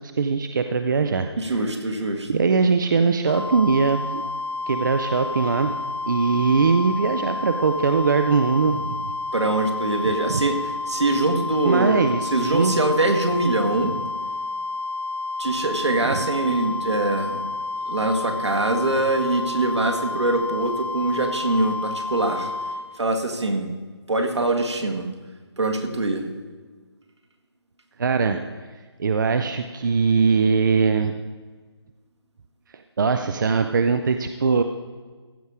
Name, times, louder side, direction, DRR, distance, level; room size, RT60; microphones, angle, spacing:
voice 1, 0.0-1.7 2.3-4.2 4.7-5.8 6.1-9.1 10.3-10.4 11.6-12.9 16.0-16.2 28.0-28.7 29.0-31.1 32.7-34.6, right 5 dB, 45° right, 7 dB, 0.5 m, -21 dB
voice 2, 1.4-2.3 9.3-13.9 15.4-17.4 17.9-22.5 23.0-23.7 24.1-25.1 25.6-26.3, right 2 dB, 75° right, 4 dB, 1.7 m, -23 dB
sound 1, 3.3-22.8, left 3 dB, 10° left, 1.2 m, -30 dB
15.0 x 5.4 x 4.7 m, 1.4 s
figure-of-eight pair, 160°, 15 cm